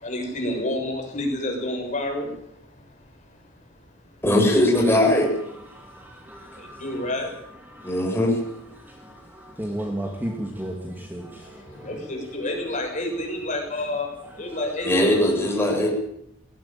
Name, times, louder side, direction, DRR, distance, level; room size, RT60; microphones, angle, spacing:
voice 1, 0.0-2.3 6.8-7.3 11.8-14.1 14.4-15.1, left 1 dB, 40° left, 1 dB, 6.9 m, -28 dB
voice 2, 4.2-5.3 7.8-8.4 14.8-15.9, left 1 dB, 10° left, -1 dB, 7.1 m, -20 dB
voice 3, 5.7-7.1 7.7-8.2 8.7-12.0 15.7-15.9, right 1 dB, 10° right, 1 dB, 2.6 m, -35 dB
19.5 x 17.5 x 9.0 m, 0.75 s
head